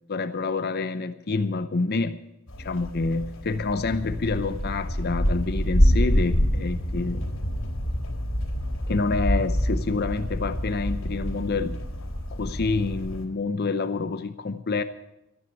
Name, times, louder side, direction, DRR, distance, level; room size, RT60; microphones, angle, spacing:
voice 1, 0.1-2.2 2.6-7.3 8.9-11.8 12.3-14.8, left 3 dB, 50° left, 11 dB, 0.7 m, -27 dB
sound 1, 2.5-13.3, equal, 90° left, 3.9 m, -26 dB
14.0 x 10.0 x 8.2 m, 0.85 s
head